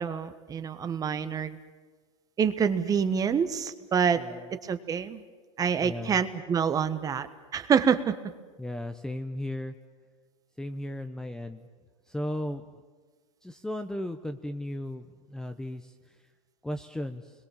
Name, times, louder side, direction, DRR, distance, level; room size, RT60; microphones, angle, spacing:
voice 1, 0.0-1.6 2.4-4.2 4.6-5.2 5.6-7.3 7.5-8.1, right 7 dB, 20° right, 11 dB, 1.3 m, -26 dB
voice 2, 5.8-6.2 8.6-9.7 10.6-11.7 12.1-12.6 13.4-15.9 16.6-17.3, left 1 dB, 5° left, 7 dB, 0.9 m, -35 dB
29.0 x 22.0 x 7.3 m, 1.4 s
hypercardioid pair, 125°, 16 cm